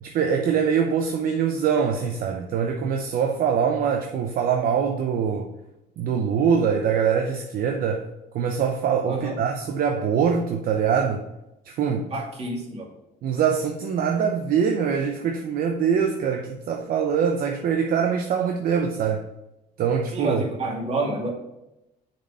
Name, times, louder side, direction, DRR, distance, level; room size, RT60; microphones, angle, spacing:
voice 1, 0.0-5.5 6.0-8.1 8.3-11.2 11.7-12.1 13.2-19.2 19.8-20.5, right 7 dB, 60° right, 0.7 m, -23 dB
voice 2, 9.1-9.4 12.1-12.9 20.1-21.3, right 2 dB, 35° right, 2.2 m, -28 dB
6.3 x 4.3 x 5.4 m
cardioid pair, 110°, 17 cm